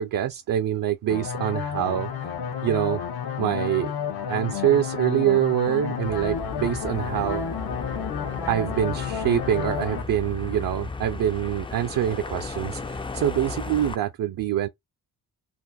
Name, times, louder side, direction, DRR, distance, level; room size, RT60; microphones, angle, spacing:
voice 1, 0.0-2.3 2.6-3.0 3.4-3.9 4.3-7.4 8.5-14.7, right 11 dB, 60° right, 0.6 m, -25 dB
sound 1, 1.1-10.0, left 7 dB, 90° left, 1.3 m, -31 dB
sound 2, 6.0-14.0, left 3 dB, 15° left, 0.4 m, -35 dB
4.3 x 2.5 x 4.1 m
cardioid pair, 120°, 37 cm